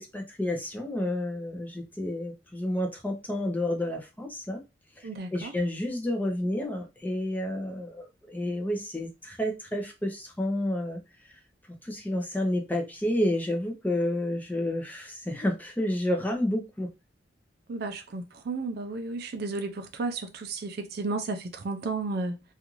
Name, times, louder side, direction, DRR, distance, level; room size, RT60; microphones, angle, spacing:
voice 1, 0.0-4.6 5.0-11.0 11.8-16.9, left 1 dB, 10° left, 0.6 m, -30 dB
voice 2, 5.0-5.5 17.7-22.5, right 3 dB, 60° right, 0.4 m, -33 dB
2.5 x 2.4 x 3.0 m
head